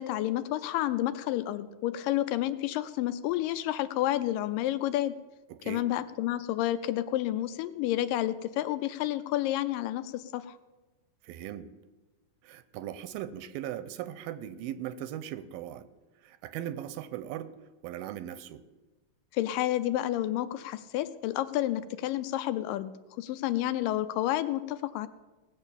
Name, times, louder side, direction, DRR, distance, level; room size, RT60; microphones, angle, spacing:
voice 1, 0.0-5.1 5.7-10.6 19.3-22.9 23.2-25.1, left 14 dB, 80° left, 12 dB, 2.1 m, -30 dB
voice 2, 5.5-5.9 11.2-11.7 12.4-15.9 16.2-17.5 17.8-18.6, right 11 dB, 90° right, 13 dB, 2.4 m, -39 dB
18.5 x 7.2 x 6.9 m, 1.2 s
omnidirectional pair, 4.1 m